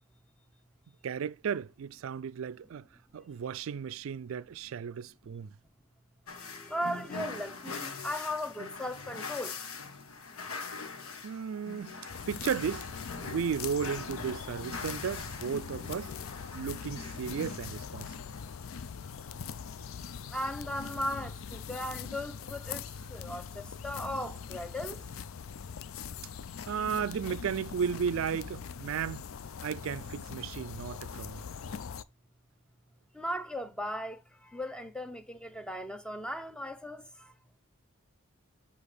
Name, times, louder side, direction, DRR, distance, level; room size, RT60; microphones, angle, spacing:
voice 1, 1.0-2.9 3.1-5.5 11.2-12.0 12.3-12.9 13.2-16.1 16.5-18.2 26.7-29.3 29.6-31.4, right 7 dB, 70° right, 0.3 m, -34 dB
sound 1, 6.3-18.5, left 4 dB, 90° left, 1.2 m, -43 dB
voice 2, 6.4-9.5 20.3-22.9 23.1-25.0 33.1-34.2 34.5-37.0, equal, 5° left, 0.6 m, -37 dB
sound 2, 12.1-32.0, left 6 dB, 75° left, 0.4 m, -42 dB
8.1 x 2.8 x 5.0 m
head